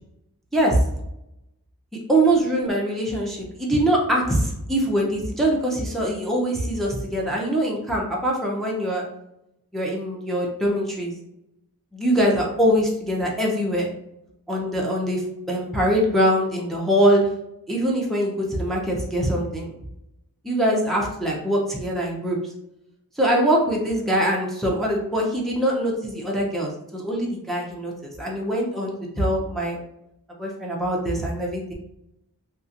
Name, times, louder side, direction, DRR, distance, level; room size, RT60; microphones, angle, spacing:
voice 1, 0.5-0.8 2.1-9.0 9.7-11.1 11.9-13.9 14.5-17.3 17.7-19.7 20.4-22.4 23.2-29.8 30.4-31.7, right 1 dB, ahead, -2 dB, 0.5 m, -23 dB
2.7 x 2.5 x 2.4 m, 0.83 s
wide cardioid pair, 40°, 36 cm